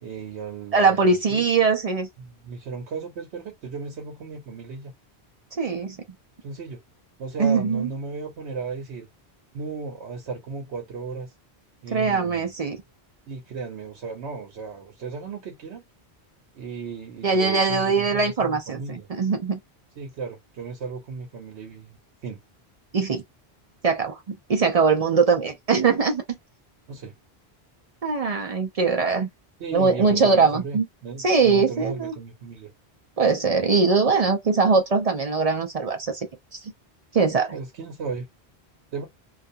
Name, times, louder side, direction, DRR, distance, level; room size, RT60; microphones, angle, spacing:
voice 1, 0.0-1.5 2.2-4.9 6.4-6.8 7.2-9.1 9.5-11.3 11.8-12.5 13.3-15.8 16.5-19.1 20.0-22.4 26.9-27.1 29.6-32.7 37.5-38.3 38.9-39.1, right 5 dB, 80° right, 1.0 m, -35 dB
voice 2, 0.7-2.1 5.6-6.0 7.4-7.9 11.9-12.8 17.2-19.6 22.9-23.2 23.8-26.2 28.0-29.3 29.7-30.8 31.2-32.1 33.2-36.3 36.5-36.6 37.1-37.6, right 4 dB, 50° right, 0.4 m, -21 dB
2.4 x 2.3 x 2.6 m
omnidirectional pair, 1.1 m